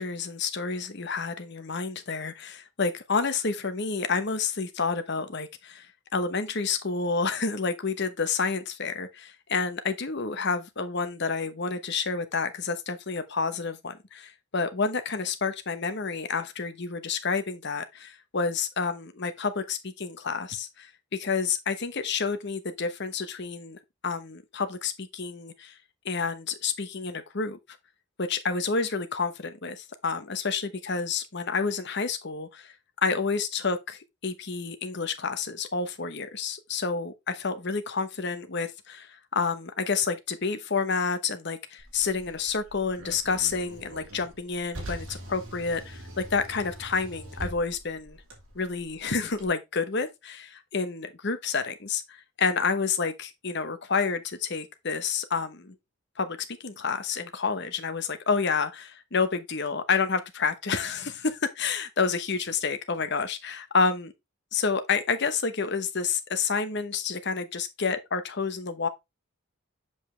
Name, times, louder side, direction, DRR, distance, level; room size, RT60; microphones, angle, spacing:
voice 1, 0.0-23.8 24.0-25.7 26.0-27.6 28.2-32.7 33.0-48.2 48.5-55.7 56.2-64.1 64.5-68.9, left 5 dB, 50° left, 1.0 m, -29 dB
Car, 41.8-49.5, right 1 dB, 75° right, 2.9 m, -43 dB
7.3 x 5.5 x 3.2 m
head